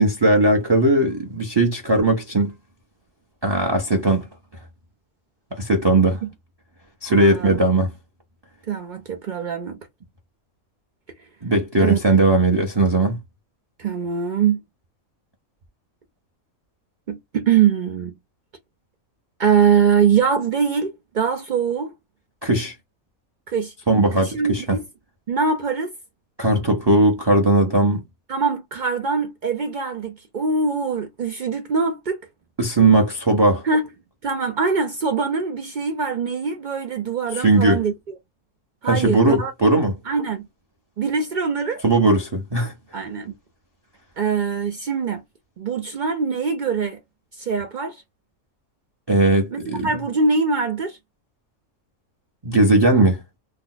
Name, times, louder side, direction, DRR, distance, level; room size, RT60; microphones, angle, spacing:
voice 1, 0.0-2.5 3.4-4.2 5.6-6.2 7.0-7.9 11.4-13.2 22.4-22.7 23.9-24.6 26.4-28.0 32.6-33.6 37.4-37.8 38.8-39.9 41.8-42.7 49.1-49.9 52.4-53.2, right 2 dB, 25° right, 0.5 m, -18 dB
voice 2, 7.1-7.6 8.7-9.8 11.8-12.0 13.8-14.6 17.1-18.1 19.4-21.9 23.5-23.7 24.1-24.8 25.3-25.9 28.3-32.2 33.6-33.9 34.2-37.9 38.8-39.5 40.1-40.5 41.0-41.8 42.9-43.3 44.2-45.2 45.6-47.0 47.4-48.0 49.5-51.0, right 5 dB, 80° right, 0.4 m, -23 dB
2.8 x 2.1 x 3.8 m
omnidirectional pair, 1.5 m